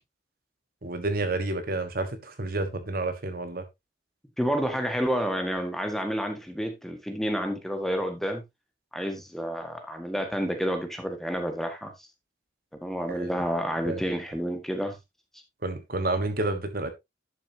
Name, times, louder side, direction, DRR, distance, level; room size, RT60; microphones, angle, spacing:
voice 1, 0.8-3.6 13.1-13.3 13.8-14.0 15.6-16.9, right 2 dB, 50° right, 1.4 m, -30 dB
voice 2, 4.4-8.4 8.9-11.9 12.8-14.9, equal, ahead, 1.6 m, -29 dB
11.5 x 6.7 x 2.8 m
head